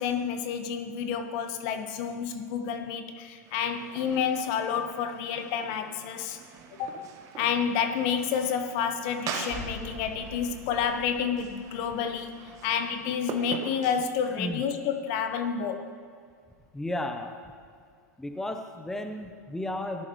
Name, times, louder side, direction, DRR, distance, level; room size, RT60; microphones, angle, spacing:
voice 1, 0.0-6.4 6.8-6.9 7.4-12.3 12.6-15.9, left 7 dB, 50° left, 7 dB, 1.2 m, -29 dB
sound 1, 3.4-14.0, right 6 dB, 40° right, 1.3 m, -43 dB
sound 2, 9.5-13.0, equal, 55° right, 3.6 m, -45 dB
voice 2, 16.7-17.4 18.2-20.1, left 1 dB, 5° left, 5 dB, 0.8 m, -33 dB
17.5 x 11.0 x 3.2 m, 2.2 s
hypercardioid pair, 110°, 9 cm